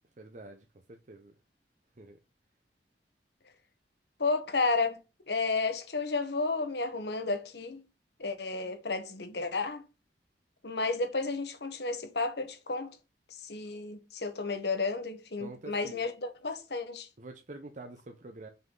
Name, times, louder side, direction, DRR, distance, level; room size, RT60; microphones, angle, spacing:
voice 1, 0.2-1.3 2.0-2.2 15.4-16.0 17.2-18.5, right 2 dB, 45° right, 0.7 m, -47 dB
voice 2, 4.2-5.0 5.3-7.8 8.2-9.8 10.6-12.9 13.4-17.1, left 3 dB, 65° left, 1.2 m, -32 dB
5.7 x 5.7 x 3.8 m
head